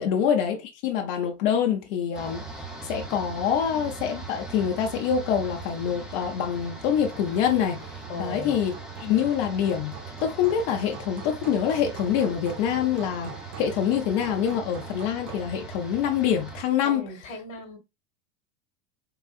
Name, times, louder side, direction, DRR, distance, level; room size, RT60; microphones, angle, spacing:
voice 1, 0.0-2.5 2.8-8.7 9.0-9.9 10.2-17.0, left 8 dB, 55° left, 0.6 m, -25 dB
sound 1, 2.1-16.6, right 4 dB, ahead, 0.6 m, -40 dB
Hammer, 5.9-15.6, right 5 dB, 45° right, 1.3 m, -45 dB
voice 2, 8.1-8.7 16.8-17.8, left 2 dB, 85° left, 1.2 m, -38 dB
3.7 x 2.3 x 2.3 m
hypercardioid pair, 85°, 39 cm